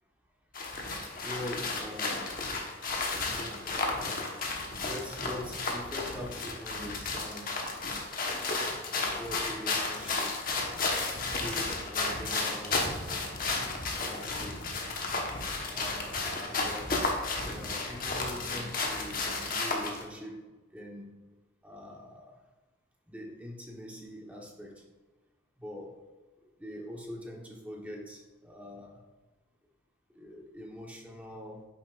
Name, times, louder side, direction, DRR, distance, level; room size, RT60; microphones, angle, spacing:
sound 1, 0.5-20.0, left 3 dB, 45° left, 1.2 m, -33 dB
voice 1, 1.2-2.7 3.3-4.3 4.8-7.7 8.3-10.3 11.4-12.8 13.9-14.7 15.6-21.2 21.6-22.4 23.1-24.8 25.6-26.1 26.6-29.0 30.1-31.7, left 1 dB, 5° right, -1 dB, 1.1 m, -43 dB
sound 2, 6.7-6.9 7.6-8.1 8.6-8.8 9.7-9.8 10.7-10.8 11.6-11.7 12.5-12.6, right 2 dB, 40° right, 1.1 m, -50 dB
9.7 x 7.2 x 2.5 m, 1.2 s
head